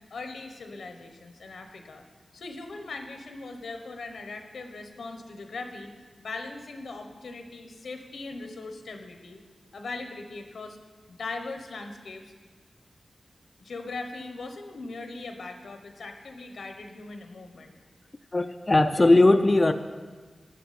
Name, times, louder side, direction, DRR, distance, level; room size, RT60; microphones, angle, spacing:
voice 1, 0.1-2.0 2.3-5.9 6.2-9.4 9.7-10.8 11.1-12.3 13.6-17.8, left 3 dB, 90° left, 5 dB, 1.0 m, -39 dB
voice 2, 18.3-19.7, left 2 dB, 30° left, 7 dB, 0.4 m, -19 dB
11.5 x 9.3 x 4.2 m, 1.5 s
wide cardioid pair, 90°, 0 cm